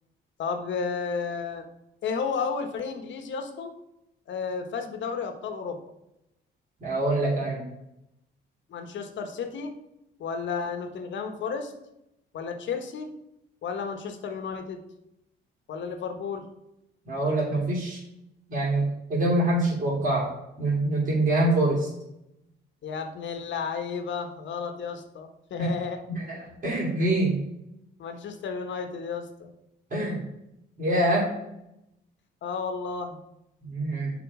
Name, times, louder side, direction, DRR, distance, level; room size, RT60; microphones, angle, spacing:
voice 1, 0.4-1.7 2.0-3.8 4.3-5.8 8.7-9.7 10.2-11.7 12.3-13.1 13.6-14.8 15.7-16.5 22.8-26.0 28.0-29.5 32.4-33.2, left 5 dB, 70° left, 7 dB, 1.2 m, -32 dB
voice 2, 6.8-7.6 17.0-18.0 18.5-20.2 20.6-21.9 25.6-25.7 26.1-27.4 29.9-30.2 30.8-31.3 33.6-34.1, right 1 dB, 45° right, -6 dB, 2.8 m, -25 dB
7.2 x 4.7 x 4.8 m, 0.86 s
cardioid pair, 90°, 20 cm